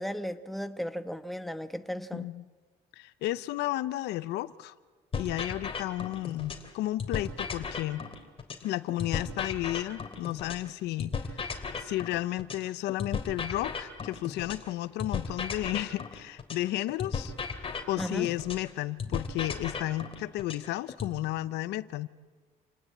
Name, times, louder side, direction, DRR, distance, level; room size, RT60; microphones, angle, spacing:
voice 1, 0.0-2.3 18.0-18.3, equal, ahead, 1.2 m, -35 dB
voice 2, 2.1-2.5 3.0-4.7 5.2-8.1 8.6-17.3 17.6-22.1, left 15 dB, 85° left, 0.8 m, -33 dB
sound 1, 5.1-6.7 7.0-10.7 11.0-14.7 15.0-18.7 19.0-21.1, left 5 dB, 35° left, 3.3 m, -36 dB
28.5 x 19.0 x 8.6 m
cardioid pair, 110°, 17 cm